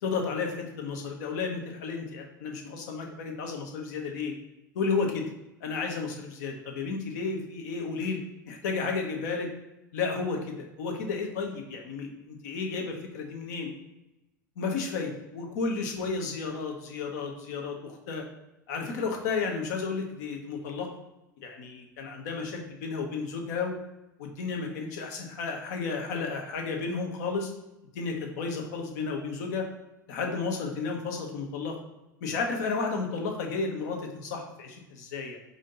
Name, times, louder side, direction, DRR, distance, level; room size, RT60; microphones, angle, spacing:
voice 1, 0.0-4.3 4.7-5.3 5.6-8.2 8.4-9.5 9.9-13.7 14.6-18.2 18.7-20.9 21.4-23.7 24.2-27.5 27.9-29.6 30.1-31.8 32.2-35.4, left 4 dB, 60° left, 2 dB, 1.1 m, -32 dB
4.9 x 2.8 x 3.9 m, 0.95 s
figure-of-eight pair, 85°, 11 cm